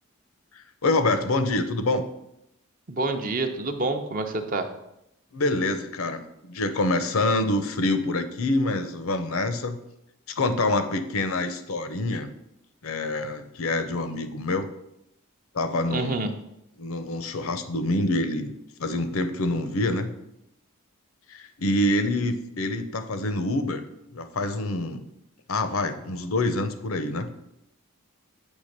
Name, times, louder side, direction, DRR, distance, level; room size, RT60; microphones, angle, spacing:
voice 1, 0.5-2.1 5.3-9.8 10.4-12.3 12.8-14.7 15.5-16.3 16.8-18.5 18.8-20.1 21.3-23.8 24.1-25.0 25.5-27.3, left 2 dB, 70° left, 10 dB, 0.7 m, -26 dB
voice 2, 2.9-4.7 15.9-16.3, right 3 dB, 40° right, 6 dB, 0.6 m, -27 dB
8.1 x 3.4 x 6.6 m, 0.82 s
head